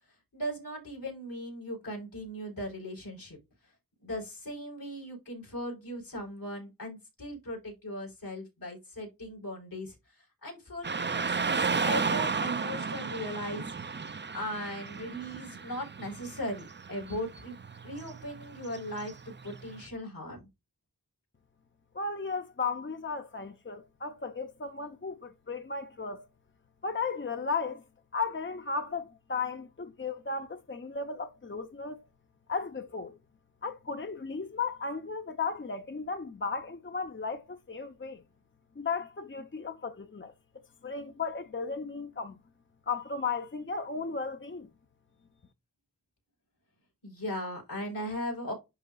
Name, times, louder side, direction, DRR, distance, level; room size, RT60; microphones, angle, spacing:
voice 1, 0.3-3.4 4.0-13.7 14.3-17.6 17.8-20.4 47.0-48.5, equal, 75° left, 4.6 m, -38 dB
Car passing by / Traffic noise roadway noise, 10.8-19.9, right 5 dB, 30° right, 0.6 m, -34 dB
voice 2, 21.9-26.3 26.8-27.8 28.1-32.0 32.5-33.2 33.6-38.2 38.8-40.3 40.8-42.4 42.9-44.7, left 4 dB, 35° left, 0.8 m, -35 dB
10.5 x 3.7 x 2.4 m
cardioid pair, 45°, 34 cm